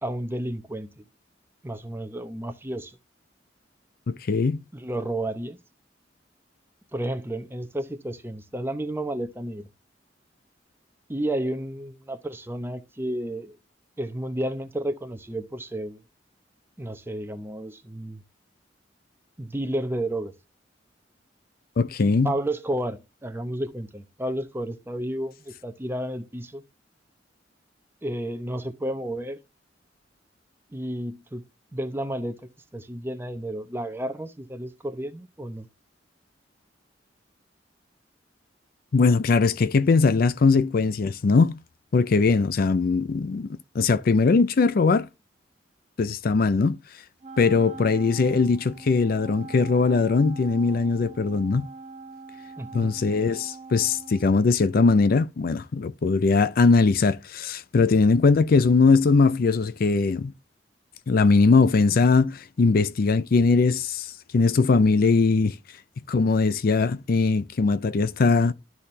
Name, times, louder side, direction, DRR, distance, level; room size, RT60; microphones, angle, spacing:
voice 1, 0.0-1.0 1.6-3.0 4.7-5.6 6.9-9.6 11.1-13.6 14.0-16.0 16.8-18.2 19.4-20.3 22.2-26.6 28.0-29.4 30.7-31.4 31.7-32.4 32.7-35.7 52.6-52.9, right 1 dB, 15° right, 0.8 m, -31 dB
voice 2, 4.1-4.6 21.8-22.3 38.9-41.6 41.9-43.5 43.7-45.1 46.0-46.8 47.4-51.7 52.7-60.3 61.1-65.6 66.1-68.5, left 4 dB, 55° left, 0.4 m, -20 dB
Wind instrument woodwind instrument, 47.2-54.9, right 4 dB, 40° right, 1.0 m, -43 dB
12.0 x 4.2 x 3.2 m
head